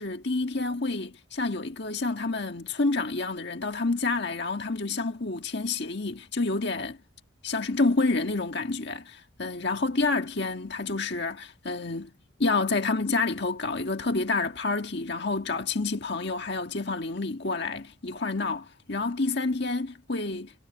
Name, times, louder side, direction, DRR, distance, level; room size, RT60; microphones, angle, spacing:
voice 1, 0.0-7.0 7.4-12.1 12.4-20.5, left 3 dB, 55° left, 1.6 m, -28 dB
head